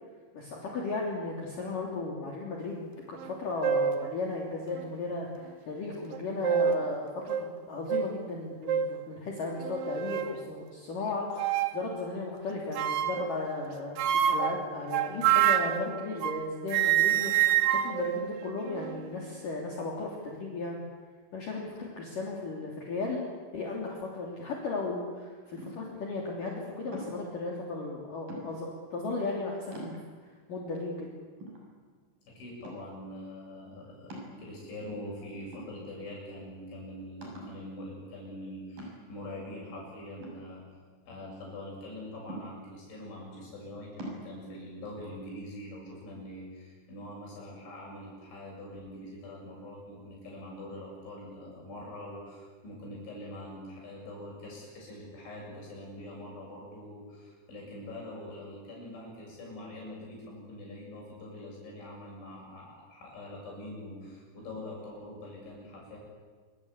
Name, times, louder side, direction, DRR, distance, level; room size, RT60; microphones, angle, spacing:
voice 1, 0.3-20.8 21.3-23.2 23.5-30.0 30.2-31.1, left 3 dB, 45° left, -2 dB, 4.4 m, -35 dB
sound 1, 3.2-3.3 3.6-4.0 4.7-4.8 6.1-6.9 7.3-7.4 7.9-8.1 8.7-9.0 9.6-10.4 11.4-11.8 12.7-13.3 14.0-16.4 16.7-19.0, right 10 dB, 85° right, 1.9 m, -27 dB
sound 2, 25.5-26.0 26.9-27.4 28.3-28.8 29.3-29.4 29.7-30.4 30.9-31.0 31.4-32.2 32.6-33.1 34.1-34.8 35.5-36.2 36.5-36.6 37.2-37.6 38.8-39.3 40.2-41.1 42.3-42.9 44.0-44.3, right 1 dB, 45° right, 8.0 m, -44 dB
voice 2, 32.3-40.6 41.1-66.0, left 1 dB, 70° left, -3 dB, 9.8 m, -44 dB
27.0 x 25.5 x 8.3 m, 1.5 s
omnidirectional pair, 5.6 m